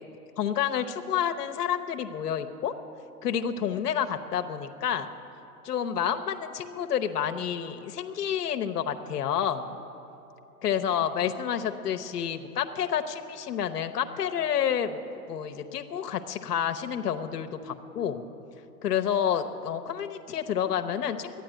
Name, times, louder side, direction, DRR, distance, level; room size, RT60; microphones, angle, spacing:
voice 1, 0.4-2.7 3.2-5.1 5.6-9.8 10.6-15.0 15.3-18.2 18.8-21.4, left 8 dB, 70° left, 7 dB, 1.0 m, -29 dB
12.0 x 9.9 x 9.9 m, 3.0 s
hypercardioid pair, 110°, 48 cm